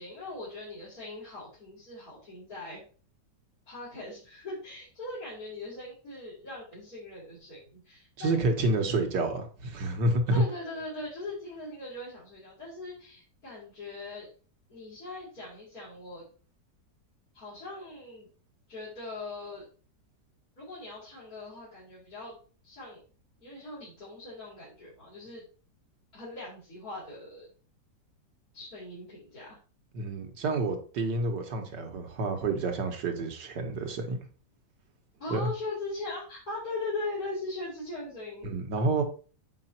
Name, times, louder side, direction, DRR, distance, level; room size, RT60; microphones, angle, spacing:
voice 1, 0.0-2.8 3.7-8.4 8.8-9.0 10.3-14.3 14.7-16.2 17.3-18.3 18.7-19.6 20.6-22.4 22.6-23.0 23.4-25.4 26.1-27.5 28.5-29.6 35.2-38.5, left 2 dB, 55° left, -10 dB, 4.4 m, -40 dB
voice 2, 8.2-10.4 29.9-34.2 35.3-35.4 38.4-39.0, right 2 dB, 75° right, 4 dB, 1.9 m, -29 dB
7.5 x 5.0 x 4.3 m, 0.38 s
omnidirectional pair, 1.9 m